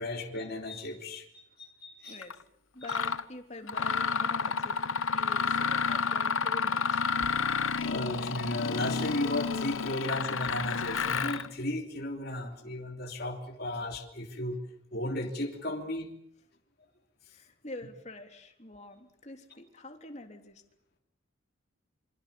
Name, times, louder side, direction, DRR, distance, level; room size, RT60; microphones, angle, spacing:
voice 1, 0.0-2.2 2.9-3.0 7.8-14.6 14.9-16.1 17.2-17.4, left 1 dB, 50° left, 1 dB, 3.2 m, -35 dB
voice 2, 2.1-2.4 2.7-4.8 5.1-7.0 17.3-20.6, left 2 dB, 35° left, 5 dB, 3.2 m, -46 dB
Mechanisms, 2.2-2.3 2.8-3.2 3.7-11.5, left 5 dB, 75° left, 1.0 m, -30 dB
27.5 x 25.5 x 7.1 m, 0.72 s
head